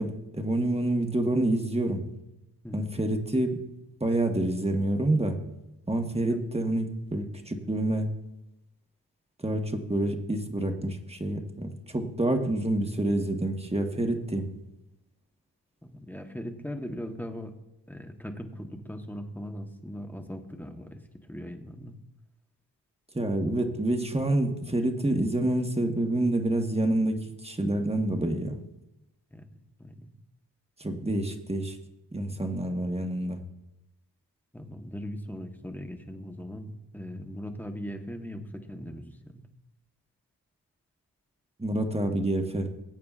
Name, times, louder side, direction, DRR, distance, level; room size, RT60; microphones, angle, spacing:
voice 1, 0.0-2.0 2.7-3.6 4.0-5.4 5.9-8.1 9.4-14.5 23.1-28.6 30.8-31.8 32.1-33.4 41.6-42.7, right 1 dB, 15° right, 5 dB, 1.2 m, -27 dB
voice 2, 2.6-3.0 6.3-6.4 7.6-7.7 15.8-17.5 17.9-21.0 21.3-22.0 29.3-29.5 29.8-30.1 34.5-39.4, equal, 5° left, 5 dB, 1.1 m, -39 dB
20.5 x 8.5 x 2.4 m, 0.91 s
wide cardioid pair, 70°, 40 cm